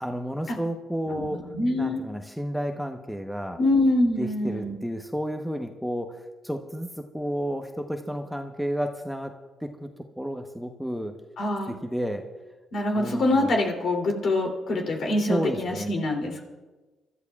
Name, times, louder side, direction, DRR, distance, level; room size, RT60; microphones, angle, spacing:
voice 1, 0.0-1.5 1.8-3.6 4.2-9.9 10.2-11.2 11.7-12.3 12.9-13.5 15.3-16.0, equal, ahead, 4 dB, 1.0 m, -31 dB
voice 2, 1.1-2.0 3.6-4.7 11.4-11.7 12.7-16.4, left 2 dB, 60° left, 1 dB, 2.9 m, -25 dB
29.0 x 13.0 x 2.4 m, 1.2 s
cardioid pair, 90°, 0 cm